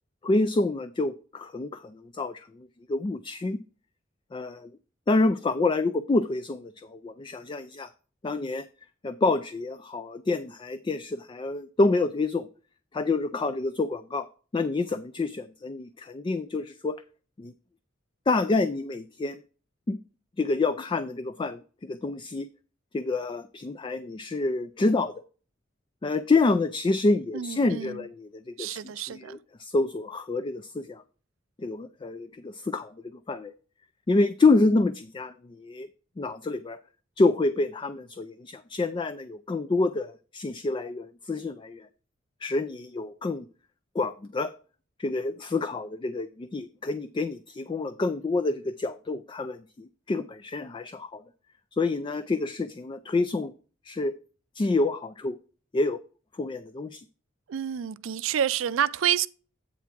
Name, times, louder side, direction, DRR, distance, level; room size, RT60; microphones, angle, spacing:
voice 1, 0.2-3.6 4.3-4.7 5.1-7.9 8.2-8.6 9.0-12.5 12.9-14.3 14.5-17.0 17.4-17.5 18.3-19.4 19.9-20.0 20.4-22.5 22.9-25.1 26.0-31.0 31.6-32.9 33.3-33.5 34.1-35.9 36.2-36.8 37.2-41.9 42.4-43.5 43.9-44.5 45.0-51.2 51.7-53.5 53.9-54.1 54.6-55.4 55.7-56.0 56.3-57.0, left 3 dB, 25° left, 0.3 m, -27 dB
voice 2, 27.3-28.1 28.6-29.4 57.5-59.3, right 9 dB, 75° right, 0.4 m, -28 dB
8.4 x 3.5 x 5.9 m
head